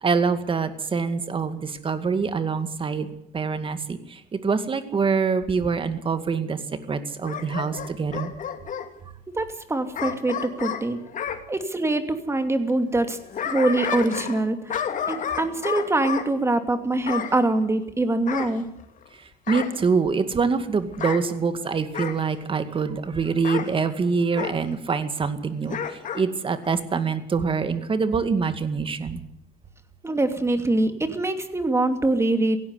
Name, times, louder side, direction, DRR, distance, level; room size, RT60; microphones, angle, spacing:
voice 1, 0.0-3.1 3.3-6.6 6.9-8.3 19.5-25.8 26.1-29.2, right 5 dB, 30° right, 10 dB, 2.2 m, -25 dB
Bark / Growling, 7.2-8.9 9.9-11.4 13.0-14.4 14.7-16.3 17.1-17.4 18.3-19.1 19.5-19.8 20.9-21.2 21.9-22.2 23.4-23.7 24.4-24.6 25.7-26.2 26.6-26.7, left 8 dB, 50° left, 2.6 m, -31 dB
voice 2, 9.3-11.0 11.5-18.7 30.0-32.6, right 2 dB, 15° right, 8 dB, 2.7 m, -24 dB
17.0 x 16.5 x 9.7 m, 0.75 s
cardioid pair, 110°, 17 cm